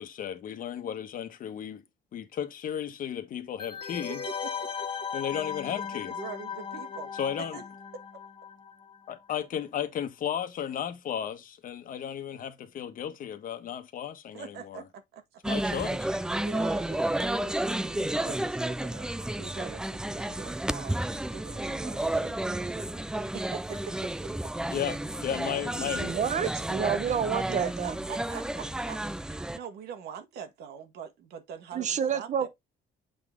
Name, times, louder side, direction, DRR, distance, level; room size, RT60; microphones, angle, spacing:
voice 1, 0.0-1.8 2.1-4.2 5.1-6.1 7.2-7.6 9.1-14.4 14.7-14.8 15.5-16.0 24.7-26.1, left 9 dB, 55° left, 1.4 m, -34 dB
sound 1, 3.6-9.1 9.3-9.4, left 7 dB, 30° left, 1.6 m, -37 dB
voice 2, 4.1-5.1 5.9-7.1 7.4-7.6 7.9-8.0 14.3-15.4 16.1-24.5 27.5-32.5, right 7 dB, 75° right, 1.6 m, -44 dB
sound 2, 15.4-29.6, right 1 dB, 5° right, 0.3 m, -31 dB
voice 3, 26.0-27.9 31.7-32.5, right 7 dB, 45° right, 1.0 m, -29 dB
7.7 x 3.9 x 3.7 m
cardioid pair, 110°, 17 cm